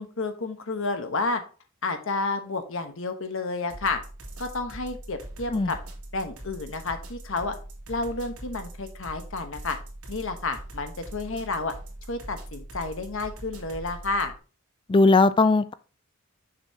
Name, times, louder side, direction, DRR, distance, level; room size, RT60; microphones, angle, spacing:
voice 1, 0.0-1.4 1.8-4.0 4.4-5.8 6.1-7.5 7.9-9.8 10.1-11.7 12.1-14.3, left 3 dB, 60° left, 1.1 m, -30 dB
sound 1, 3.7-14.4, right 1 dB, 70° right, 2.3 m, -42 dB
voice 2, 14.9-15.7, left 3 dB, 20° left, 0.3 m, -18 dB
6.8 x 6.5 x 2.8 m
head